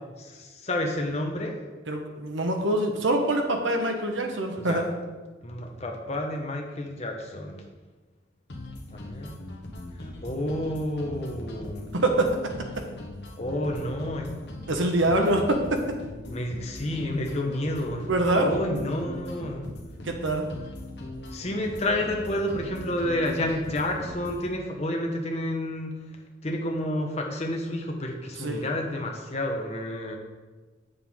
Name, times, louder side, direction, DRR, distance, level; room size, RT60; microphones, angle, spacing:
voice 1, 0.2-1.6 4.6-4.8 5.4-7.6 8.9-9.4 10.2-11.9 13.4-14.3 15.1-15.2 16.3-18.1 18.4-19.6 21.3-25.9 26.4-30.2, left 1 dB, 35° left, 2 dB, 1.1 m, -30 dB
voice 2, 1.9-4.9 11.9-12.8 14.7-16.0 18.1-18.5 20.0-20.5 28.4-28.6, right 1 dB, 85° right, 4 dB, 1.1 m, -25 dB
sound 1, 8.5-24.5, left 1 dB, 60° left, 1.1 m, -40 dB
8.0 x 6.7 x 3.7 m, 1.3 s
head